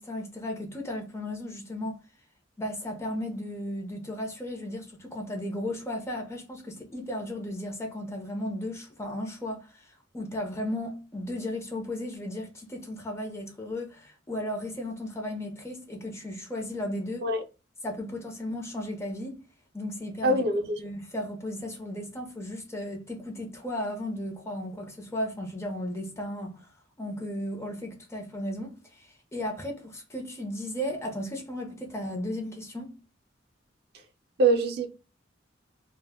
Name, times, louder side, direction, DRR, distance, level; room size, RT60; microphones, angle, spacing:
voice 1, 0.0-2.0 2.6-17.3 17.8-19.4 19.7-20.4 20.8-26.6 27.0-33.0, left 1 dB, 15° left, 0.5 m, -35 dB
voice 2, 20.2-20.8 34.4-34.9, right 2 dB, 55° right, 0.5 m, -23 dB
2.1 x 2.0 x 3.4 m
head